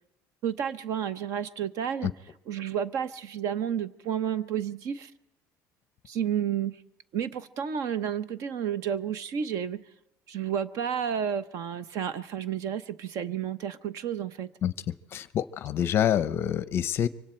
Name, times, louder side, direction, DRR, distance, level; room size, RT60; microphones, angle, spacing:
voice 1, 0.4-2.1 2.5-5.1 6.1-6.8 7.1-9.8 10.3-14.5, right 8 dB, 50° right, 14 dB, 0.9 m, -31 dB
voice 2, 15.1-17.1, left 10 dB, 35° left, 15 dB, 0.7 m, -26 dB
25.5 x 24.5 x 4.4 m, 0.87 s
cardioid pair, 175°, 7 cm